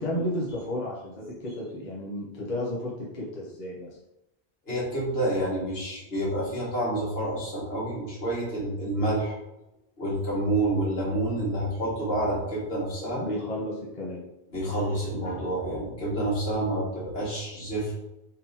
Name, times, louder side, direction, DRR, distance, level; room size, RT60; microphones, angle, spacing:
voice 1, 0.0-4.0 13.2-14.2, left 1 dB, 45° left, -4 dB, 0.9 m, -32 dB
voice 2, 4.7-9.4 10.0-13.2 14.5-17.9, right 1 dB, 70° left, -6 dB, 1.9 m, -28 dB
4.0 x 2.8 x 4.0 m, 0.91 s
omnidirectional pair, 1.1 m